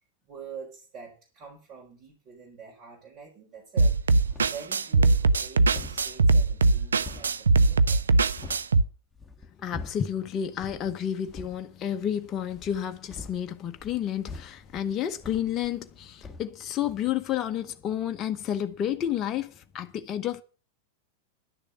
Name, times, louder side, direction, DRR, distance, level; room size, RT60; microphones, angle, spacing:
voice 1, 0.3-4.0 4.3-8.2, right 6 dB, 40° right, 4.2 m, -46 dB
sound 1, 3.8-4.7 5.1-8.7 9.1-10.2 10.6-10.9 11.2-11.6 12.5-16.0 16.2-16.5, left 3 dB, 10° left, 1.6 m, -45 dB
sound 2, 3.8-8.8, right 3 dB, 70° right, 0.6 m, -21 dB
voice 2, 9.6-20.4, left 10 dB, 30° left, 0.9 m, -30 dB
11.0 x 6.7 x 7.9 m
figure-of-eight pair, 90°, 0 cm